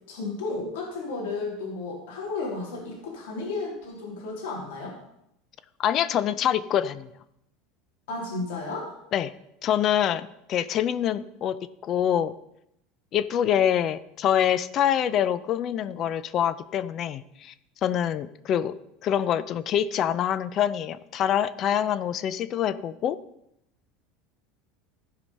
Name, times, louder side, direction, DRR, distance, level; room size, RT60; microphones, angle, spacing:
voice 1, 0.1-4.9 8.1-8.9, left 3 dB, 85° left, -1 dB, 3.3 m, -33 dB
voice 2, 5.8-7.1 9.1-9.3 9.6-11.6 11.8-12.3 13.1-17.5 17.8-18.7 19.0-23.2, left 10 dB, 40° left, 16 dB, 0.5 m, -25 dB
15.0 x 5.0 x 5.4 m, 0.79 s
supercardioid pair, 145°, 0 cm